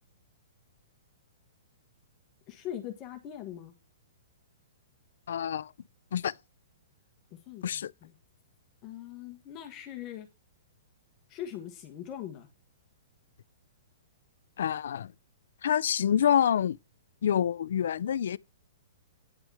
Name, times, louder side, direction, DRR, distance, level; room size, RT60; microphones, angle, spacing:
voice 1, 2.5-3.7 7.3-8.1 8.8-10.3 11.3-12.5, left 11 dB, 20° left, 1.4 m, -41 dB
voice 2, 5.3-5.7 6.1-6.3 7.6-7.9 14.6-15.1 15.6-16.8 17.2-18.4, left 9 dB, 60° left, 0.4 m, -27 dB
9.9 x 6.4 x 4.8 m
hypercardioid pair, 180°, 0 cm